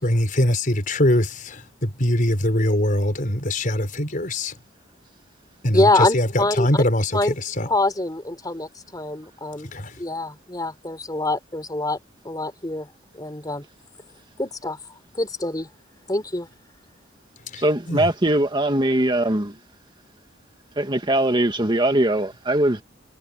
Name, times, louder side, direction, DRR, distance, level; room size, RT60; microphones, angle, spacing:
voice 1, 0.0-4.5 5.6-5.9 6.1-7.1 7.6-7.7 9.7-9.9 17.5-17.6 17.9-18.0, left 1 dB, 45° left, 4.9 m, -22 dB
voice 2, 5.7-6.8 7.1-7.4 7.6-9.7 10.0-12.0 12.2-12.9 13.1-13.6 14.4-14.8 15.2-15.7 16.1-16.5, left 2 dB, 20° left, 3.9 m, -24 dB
voice 3, 17.6-19.6 20.8-22.8, right 1 dB, 25° right, 1.9 m, -21 dB
head